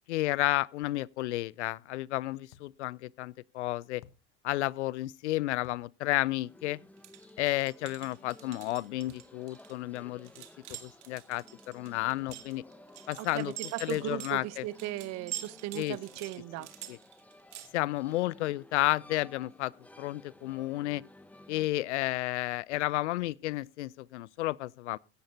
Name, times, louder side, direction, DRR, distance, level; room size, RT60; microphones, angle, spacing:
voice 1, 0.1-4.0 4.4-6.8 7.4-10.3 10.8-12.6 13.1-13.5 13.8-14.6 15.7-16.0 16.9-17.0 17.7-19.7 20.0-21.0 21.5-25.0, left 17 dB, 75° left, 0.5 m, -32 dB
sound 1, 2.5-2.8 4.0-4.3 5.6-5.9 7.4-7.6 9.1-9.3 10.7-11.0 12.3-12.5, left 11 dB, 60° left, 1.2 m, -55 dB
sound 2, 6.3-21.7, left 1 dB, 5° left, 1.4 m, -55 dB
sound 3, 7.0-17.7, right 13 dB, 80° right, 1.8 m, -45 dB
voice 2, 13.2-16.7, right 16 dB, 50° right, 0.8 m, -37 dB
16.0 x 11.5 x 2.8 m
hypercardioid pair, 80°, 35 cm